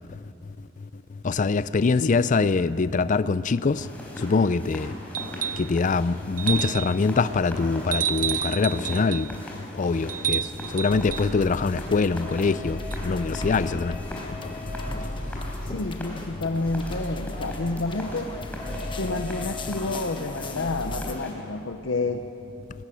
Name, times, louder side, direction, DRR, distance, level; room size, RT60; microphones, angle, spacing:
voice 1, 1.2-3.9 4.2-4.9 5.6-9.3 9.8-10.4 10.7-14.0, left 4 dB, 40° left, 0.4 m, -23 dB
sound 1, 3.7-21.3, left 1 dB, 10° left, 4.2 m, -39 dB
sound 2, 5.1-5.7 6.4-7.0 7.9-9.3 10.1-11.3 12.9-13.0, right 9 dB, 45° right, 0.6 m, -29 dB
sound 3, 10.9-21.1, left 1 dB, 25° left, 1.2 m, -36 dB
voice 2, 15.7-18.3 19.0-22.3, left 3 dB, 85° left, 0.8 m, -29 dB
20.0 x 14.5 x 9.1 m
head